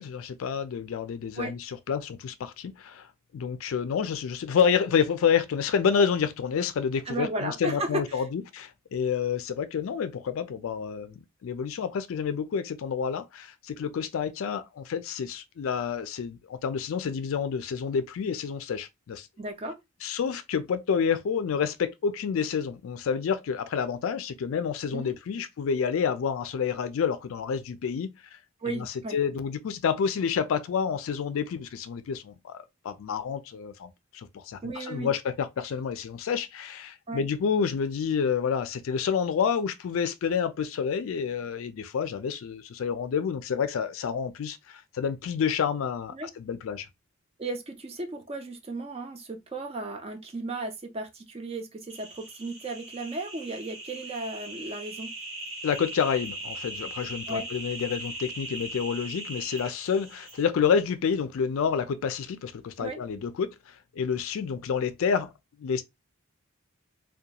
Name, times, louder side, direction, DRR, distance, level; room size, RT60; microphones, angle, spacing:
voice 1, 0.0-3.1 3.3-19.3 20.0-28.1 28.7-28.9 29.1-32.5 32.8-46.9 55.6-65.3 65.6-65.8, left 6 dB, 70° left, 0.3 m, -29 dB
voice 2, 7.1-8.2 19.4-19.8 24.9-25.2 28.6-29.2 34.6-35.1 37.1-37.2 46.1-46.3 47.4-55.1 57.3-57.5 62.8-63.0, right 2 dB, 25° right, 0.4 m, -35 dB
sound 1, 51.9-60.4, right 1 dB, 70° right, 0.9 m, -39 dB
2.3 x 2.2 x 2.8 m
head